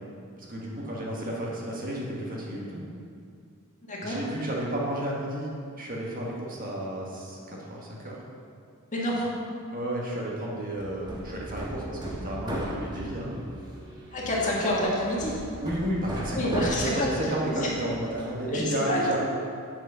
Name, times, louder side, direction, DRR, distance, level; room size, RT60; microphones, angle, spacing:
voice 1, 0.4-2.8 4.0-5.5 5.8-8.2 9.7-13.5 15.6-19.2, right 1 dB, 45° right, -4 dB, 1.6 m, -32 dB
voice 2, 3.9-4.2 8.9-9.3 14.1-15.4 16.3-17.1 17.5-17.7 18.5-19.0, left 1 dB, 35° left, -4 dB, 1.7 m, -28 dB
Hammer, 10.8-18.6, right 1 dB, 20° right, 1.1 m, -37 dB
7.5 x 6.0 x 5.6 m, 2.4 s
head